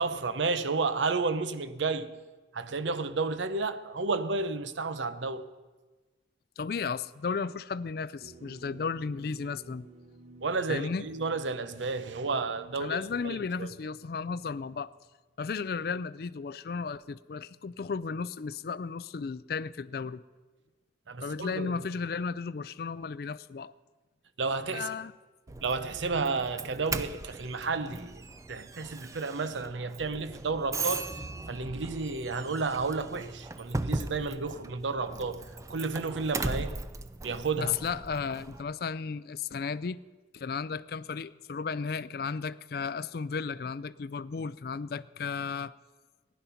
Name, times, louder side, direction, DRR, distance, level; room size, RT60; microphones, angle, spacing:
voice 1, 0.0-2.2 2.5-5.5 10.4-13.7 21.1-21.8 24.4-24.9 25.6-28.2 28.5-31.1 31.5-36.8 37.2-37.8, right 4 dB, 90° right, 0.7 m, -32 dB
voice 2, 6.6-9.9 10.7-11.0 12.8-14.9 15.4-20.2 21.2-23.7 24.7-25.1 37.6-40.0 40.3-45.7, left 5 dB, 55° left, 0.4 m, -34 dB
sound 1, 8.2-15.4, right 2 dB, 40° right, 1.6 m, -55 dB
Doorbell, 25.5-38.6, right 3 dB, 15° right, 0.4 m, -38 dB
15.5 x 10.5 x 5.7 m
head